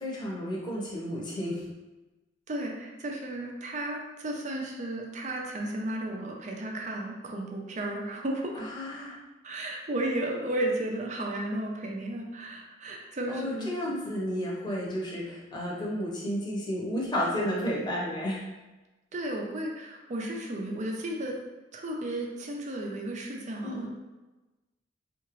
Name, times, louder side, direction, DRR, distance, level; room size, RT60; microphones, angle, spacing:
voice 1, 0.0-1.6 8.5-9.2 13.3-18.5 23.6-23.9, equal, 25° left, -5 dB, 0.9 m, -32 dB
voice 2, 2.5-8.6 9.4-13.7 19.1-21.4 21.7-23.9, right 1 dB, 40° right, 0 dB, 0.5 m, -33 dB
3.8 x 2.5 x 3.1 m, 1.1 s
head